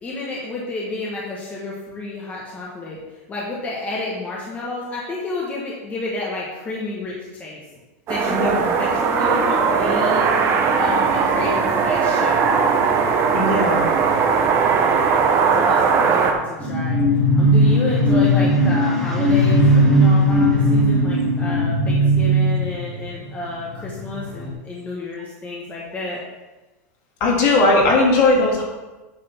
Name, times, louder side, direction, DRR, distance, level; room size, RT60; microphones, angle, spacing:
voice 1, 0.0-7.6 8.1-10.3 10.8-12.6 15.5-17.0 17.4-26.2, left 2 dB, 20° left, -4 dB, 1.5 m, -30 dB
sound 1, 8.1-16.3, right 5 dB, 35° right, 1.0 m, -19 dB
voice 2, 8.3-8.7 13.3-13.9 27.2-28.6, left 2 dB, 50° left, -2 dB, 2.5 m, -18 dB
sound 2, 16.6-24.5, equal, 5° left, 1.8 m, -17 dB
9.2 x 4.0 x 5.6 m, 1.1 s
supercardioid pair, 135°, 8 cm